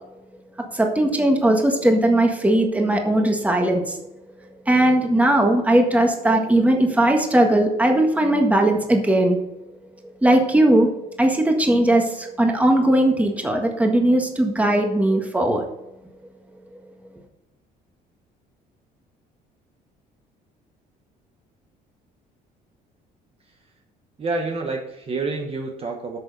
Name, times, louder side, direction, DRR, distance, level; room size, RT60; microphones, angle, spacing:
voice 1, 0.6-4.0 4.7-9.4 10.2-10.9 11.2-15.7, right 1 dB, 10° right, 2 dB, 1.6 m, -18 dB
voice 2, 24.2-26.2, right 3 dB, 35° right, 2 dB, 1.2 m, -28 dB
9.7 x 6.4 x 4.1 m, 0.92 s
cardioid pair, 110°, 17 cm